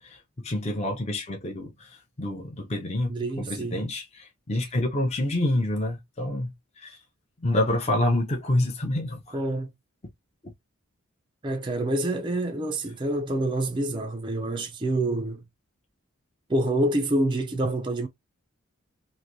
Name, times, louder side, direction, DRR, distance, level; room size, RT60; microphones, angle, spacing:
voice 1, 0.0-3.1 3.4-7.0 7.4-9.4, left 1 dB, 30° left, 0.6 m, -28 dB
voice 2, 3.1-3.9 9.3-9.7 11.4-15.4 16.5-18.1, right 1 dB, 20° right, 0.4 m, -27 dB
3.2 x 2.6 x 2.6 m
head